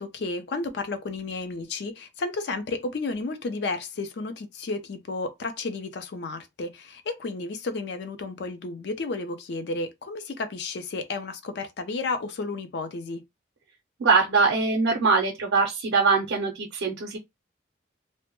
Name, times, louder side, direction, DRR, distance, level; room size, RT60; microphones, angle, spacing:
voice 1, 0.0-13.2, left 3 dB, 60° left, 0.4 m, -32 dB
voice 2, 14.0-17.2, right 4 dB, 90° right, 0.5 m, -22 dB
2.1 x 2.0 x 2.9 m
head